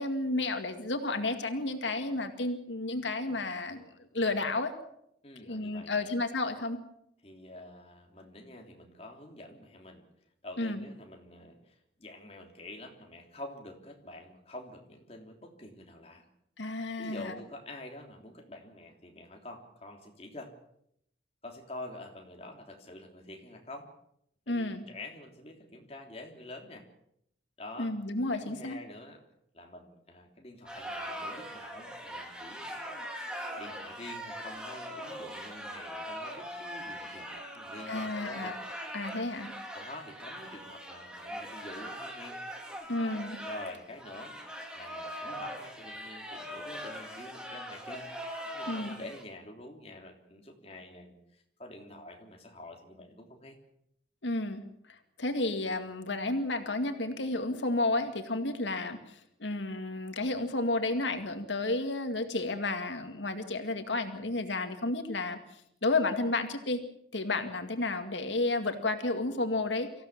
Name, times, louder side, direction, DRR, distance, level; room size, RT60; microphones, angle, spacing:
voice 1, 0.0-3.9 4.1-4.7 5.4-6.8 10.6-10.8 16.6-17.3 24.5-24.8 27.8-28.8 37.9-38.6 38.9-39.5 42.9-43.4 48.7-48.9 54.2-66.8 67.1-69.9, left 2 dB, 90° left, 7 dB, 2.2 m, -32 dB
voice 2, 5.2-6.1 7.2-10.1 10.4-16.2 17.0-20.5 21.4-23.9 24.5-26.8 27.6-27.9 28.3-29.2 29.5-32.8 33.6-38.6 39.7-42.4 43.5-48.1 48.5-53.6, left 1 dB, 35° left, 2 dB, 3.3 m, -47 dB
sound 1, 30.6-49.2, equal, 5° right, 3.4 m, -41 dB
25.0 x 15.5 x 7.4 m, 0.74 s
head